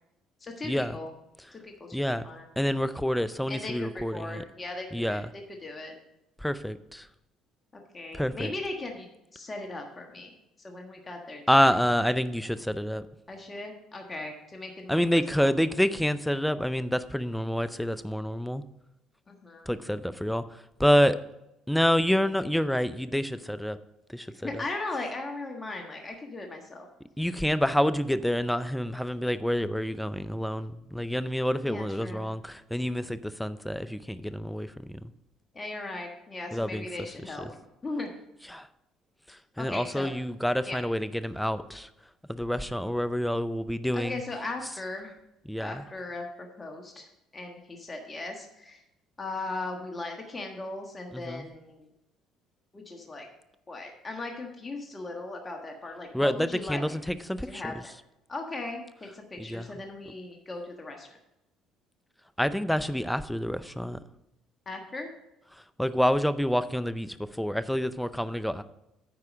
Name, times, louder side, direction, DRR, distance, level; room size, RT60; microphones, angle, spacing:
voice 1, 0.4-1.1 1.5-2.5 3.5-5.9 7.7-9.1 9.3-10.3 10.6-11.7 13.3-15.5 19.3-19.7 24.4-26.9 31.6-32.3 35.5-37.5 37.8-38.1 39.6-40.1 40.6-40.8 43.9-45.1 45.6-46.2 46.6-47.1 47.3-48.8 49.2-51.9 52.7-53.3 53.7-57.0 57.4-57.9 58.3-61.2 64.7-65.1, left 2 dB, 25° left, 2 dB, 1.4 m, -38 dB
voice 2, 1.9-2.2 2.6-4.4 4.9-5.3 6.4-7.1 8.1-8.5 11.5-13.0 14.9-18.6 19.7-20.4 20.8-21.2 21.7-23.8 24.1-24.3 24.5-24.6 27.2-34.9 36.5-36.9 38.5-38.7 39.6-41.9 42.3-44.2 45.5-45.8 51.1-51.4 56.1-57.7 59.4-59.7 62.4-64.0 65.8-68.6, equal, 5° left, 13 dB, 0.5 m, -27 dB
9.0 x 4.8 x 6.2 m, 0.86 s
supercardioid pair, 75°, 0 cm